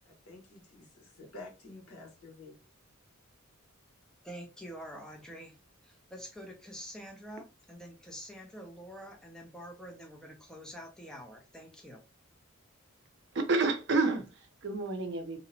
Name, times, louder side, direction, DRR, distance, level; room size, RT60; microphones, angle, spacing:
voice 1, 0.0-2.6, left 2 dB, 85° left, 1.0 m, -50 dB
voice 2, 4.2-5.6 5.8-12.0, equal, 5° left, 0.4 m, -46 dB
voice 3, 13.3-15.4, right 3 dB, 55° right, 0.5 m, -30 dB
2.8 x 2.0 x 2.6 m
head